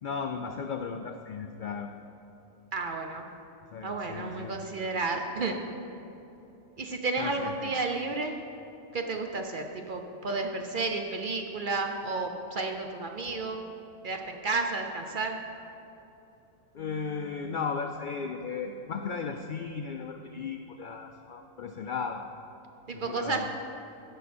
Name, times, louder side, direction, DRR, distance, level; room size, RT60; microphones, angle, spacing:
voice 1, 0.0-1.9 3.7-4.6 7.2-7.7 16.7-22.2 22.9-23.5, left 5 dB, 85° left, 5 dB, 0.4 m, -35 dB
voice 2, 2.7-3.2 3.8-5.5 6.8-8.4 8.9-13.6 14.0-15.4 22.9-23.5, right 3 dB, 55° right, 4 dB, 0.6 m, -32 dB
15.5 x 5.8 x 4.3 m, 2.9 s
omnidirectional pair, 1.4 m